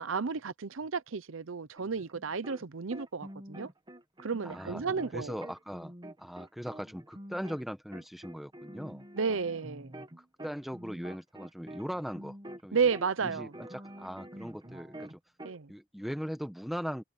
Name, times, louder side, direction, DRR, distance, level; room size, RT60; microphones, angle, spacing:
voice 1, 0.0-3.7 4.2-5.4 9.1-9.9 12.7-13.5 15.4-15.7, right 5 dB, 85° right, 0.7 m, -32 dB
sound 1, 1.8-2.6 2.9-7.7 7.9-12.7 12.9-15.6, right 1 dB, 20° right, 1.5 m, -47 dB
voice 2, 4.4-4.8 5.1-9.4 10.2-12.4 12.6-12.8 13.2-15.2 15.7-17.0, equal, ahead, 1.2 m, -39 dB
head